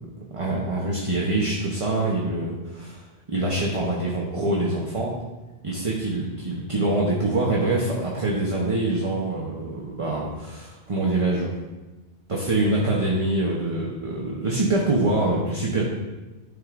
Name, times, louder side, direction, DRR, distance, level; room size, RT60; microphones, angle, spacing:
voice 1, 0.3-3.0 3.3-5.2 5.6-11.5 12.3-15.8, right 2 dB, 35° right, -3 dB, 0.9 m, -25 dB
12.0 x 4.8 x 2.5 m, 1.1 s
omnidirectional pair, 1.1 m